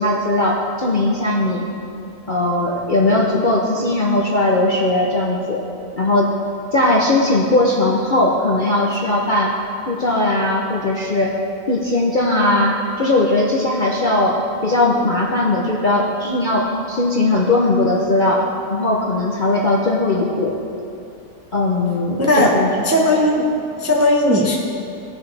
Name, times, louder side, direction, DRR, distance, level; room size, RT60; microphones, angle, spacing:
voice 1, 0.0-1.6 2.3-5.6 6.0-6.3 6.7-9.5 9.9-11.4 11.7-20.6 21.5-22.7, left 2 dB, 45° left, -3 dB, 0.7 m, -18 dB
voice 2, 22.2-22.5 22.8-23.4 23.8-24.5, left 1 dB, 15° right, -2 dB, 0.6 m, -16 dB
17.0 x 6.2 x 3.3 m, 2.6 s
omnidirectional pair, 1.7 m